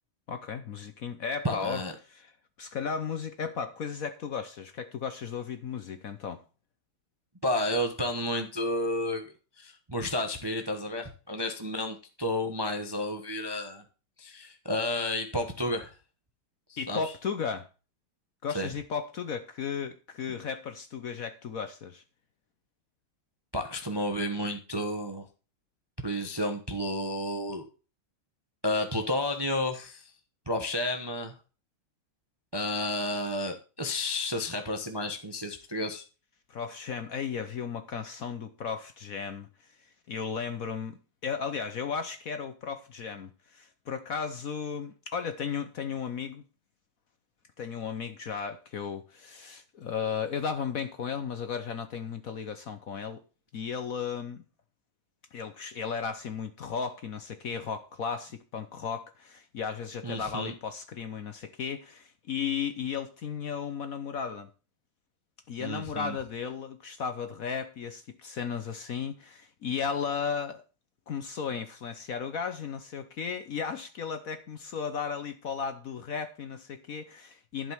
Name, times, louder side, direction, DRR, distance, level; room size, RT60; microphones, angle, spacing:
voice 1, 0.3-2.3 2.6-6.4 16.8-17.7 18.4-22.0 36.5-39.7 40.1-46.4 47.6-53.2 53.5-54.4 55.3-64.5 65.5-70.6 71.1-77.7, left 6 dB, 60° left, 0.9 m, -35 dB
voice 2, 1.4-1.9 7.4-9.2 9.6-13.8 14.2-15.9 16.7-17.0 18.5-18.7 23.5-25.2 26.0-27.7 28.6-30.1 30.5-31.3 32.5-36.0 60.0-60.5 65.6-66.1, left 1 dB, 25° right, 0.5 m, -31 dB
11.5 x 5.3 x 7.1 m
omnidirectional pair, 2.4 m